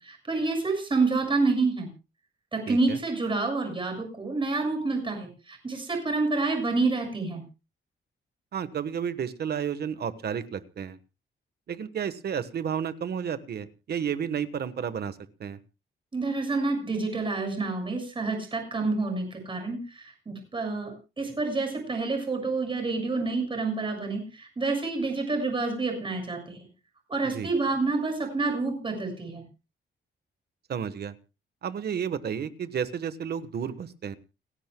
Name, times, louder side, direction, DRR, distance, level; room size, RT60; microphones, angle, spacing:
voice 1, 0.0-1.9 2.5-7.4 16.1-26.7 27.1-29.4, right 3 dB, 25° right, 3 dB, 6.8 m, -28 dB
voice 2, 2.7-3.0 8.5-11.0 11.7-15.6 27.3-27.5 30.7-31.1 31.6-34.2, right 8 dB, 50° right, 12 dB, 1.2 m, -32 dB
30.0 x 11.0 x 2.2 m, 0.30 s
wide cardioid pair, 155°, 21 cm